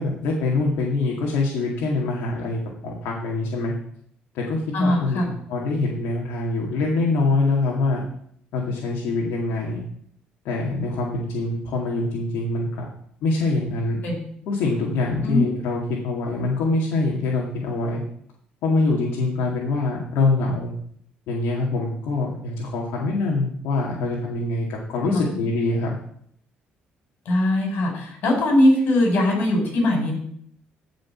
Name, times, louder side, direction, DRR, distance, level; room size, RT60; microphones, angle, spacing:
voice 1, 0.0-3.7 4.3-8.0 8.5-9.8 10.4-12.9 13.2-14.0 14.5-18.0 18.6-20.7 21.3-26.0, left 3 dB, 80° left, -2 dB, 2.3 m, -24 dB
voice 2, 4.7-5.3 14.0-14.2 15.2-15.5 25.1-25.4 27.3-30.1, left 1 dB, 65° left, 1 dB, 5.2 m, -20 dB
15.5 x 5.3 x 6.0 m, 0.66 s
cardioid pair, 115°, 4 cm